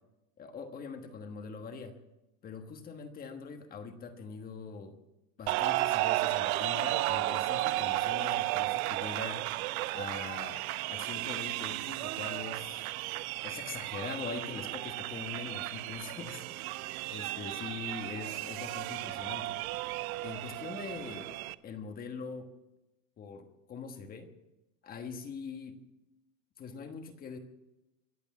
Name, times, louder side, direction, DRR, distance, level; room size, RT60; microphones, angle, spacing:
voice 1, 0.4-2.0 2.4-5.0 5.4-9.4 9.9-10.6 10.9-12.9 13.4-16.7 17.1-19.6 20.2-21.3 21.6-22.5 23.2-24.3 24.8-25.8 26.6-27.4, left 5 dB, 20° left, 7 dB, 1.3 m, -42 dB
sound 1, 5.5-21.5, right 17 dB, 80° right, 0.8 m, -34 dB
24.0 x 8.2 x 7.2 m, 0.97 s
supercardioid pair, 165°, 42 cm